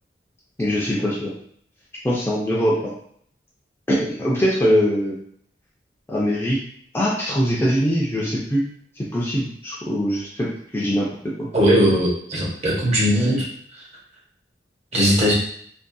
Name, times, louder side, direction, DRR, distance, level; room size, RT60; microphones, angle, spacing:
voice 1, 0.6-1.3 2.0-2.9 3.9-5.2 6.1-6.6 6.9-8.6 9.0-11.1 11.4-11.5, equal, 15° left, -5 dB, 0.4 m, -22 dB
voice 2, 11.5-13.5 14.9-15.3, equal, 40° right, -3 dB, 0.7 m, -19 dB
2.6 x 2.3 x 2.2 m, 0.63 s
head